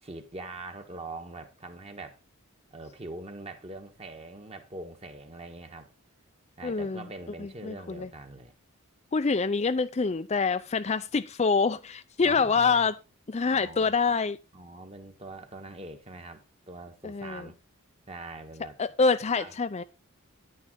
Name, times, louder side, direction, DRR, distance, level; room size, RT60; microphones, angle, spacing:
voice 1, 0.0-2.2 2.7-5.9 6.6-8.5 12.2-12.9 13.5-14.2 14.5-17.6 18.1-18.8 19.3-19.5, right 2 dB, 25° right, 1.4 m, -43 dB
voice 2, 6.6-7.0 7.4-8.1 9.1-12.9 13.3-14.4 17.0-17.5 18.8-19.8, left 4 dB, 30° left, 0.4 m, -26 dB
10.0 x 9.5 x 3.8 m
head